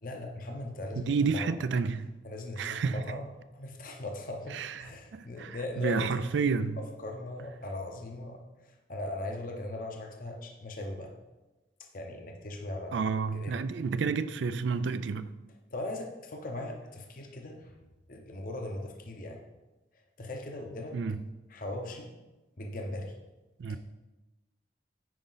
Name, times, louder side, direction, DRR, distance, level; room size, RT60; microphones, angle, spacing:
voice 1, 0.0-1.6 2.2-3.3 3.5-6.5 6.8-11.1 11.9-13.7 15.7-17.7 18.1-19.4 20.2-21.0 21.5-22.1 22.6-23.1 23.7-23.8, left 1 dB, 45° left, 0.8 m, -39 dB
voice 2, 1.1-2.1 2.6-3.0 4.5-4.9 5.1-6.8 12.9-15.3 20.9-21.2 23.6-23.8, right 5 dB, 75° right, 0.4 m, -30 dB
9.4 x 4.9 x 3.9 m
head